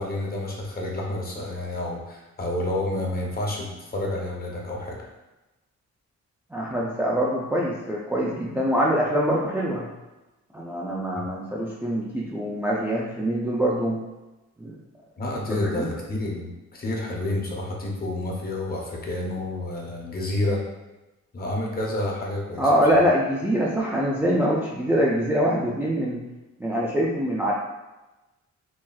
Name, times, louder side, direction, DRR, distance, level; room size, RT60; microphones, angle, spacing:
voice 1, 0.0-5.0 11.1-11.3 15.2-20.6 21.3-23.0, left 1 dB, 30° left, -2 dB, 0.7 m, -29 dB
voice 2, 6.5-9.9 10.5-14.0 14.6-14.8 15.5-15.9 22.6-26.2 26.6-27.5, equal, 5° right, -4 dB, 0.3 m, -24 dB
5.9 x 2.4 x 2.3 m, 1.1 s
wide cardioid pair, 165°, 29 cm